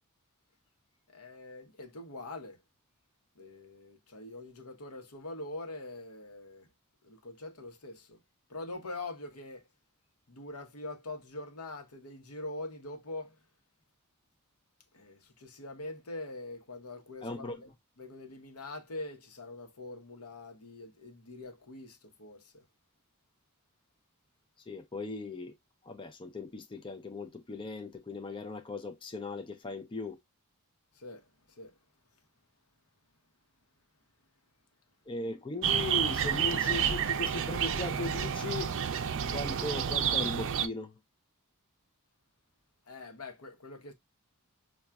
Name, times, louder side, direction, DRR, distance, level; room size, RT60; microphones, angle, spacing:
voice 1, 1.1-2.6 3.4-6.7 7.0-8.2 8.5-9.6 10.3-13.3 14.9-17.7 18.0-22.6 31.0-31.3 31.6-31.7 42.9-43.9, left 2 dB, 75° left, 0.9 m, -43 dB
voice 2, 17.2-17.5 24.7-25.5 25.9-30.2 35.1-38.7 39.3-40.9, left 3 dB, 20° left, 0.4 m, -38 dB
sound 1, 35.6-40.7, right 8 dB, 60° right, 0.5 m, -30 dB
5.6 x 2.3 x 2.2 m
head